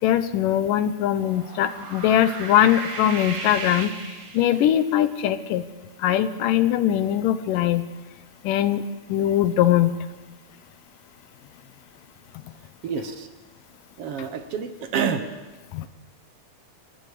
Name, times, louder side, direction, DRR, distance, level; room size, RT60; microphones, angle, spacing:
voice 1, 0.0-5.7 6.0-7.8 8.4-8.8 9.1-9.9 15.7-15.9, left 11 dB, 80° left, 12 dB, 2.5 m, -21 dB
sound 1, 1.2-4.9, right 4 dB, 40° right, 1.3 m, -36 dB
voice 2, 12.8-13.3 14.0-15.3, right 6 dB, 60° right, 8 dB, 1.7 m, -28 dB
26.5 x 20.0 x 4.9 m, 1.2 s
omnidirectional pair, 3.8 m